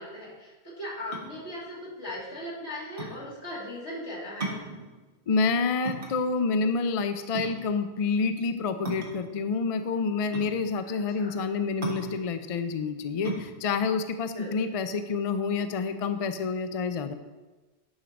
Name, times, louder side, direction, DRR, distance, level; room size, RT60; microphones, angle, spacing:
voice 1, 0.0-4.6 10.9-11.3 14.3-14.5, left 1 dB, 85° left, -5 dB, 2.7 m, -38 dB
sound 1, 0.9-15.3, right 2 dB, 55° right, 1.6 m, -38 dB
voice 2, 5.3-17.1, left 4 dB, 45° left, 9 dB, 0.5 m, -28 dB
10.5 x 4.5 x 5.1 m, 1.2 s
omnidirectional pair, 1.1 m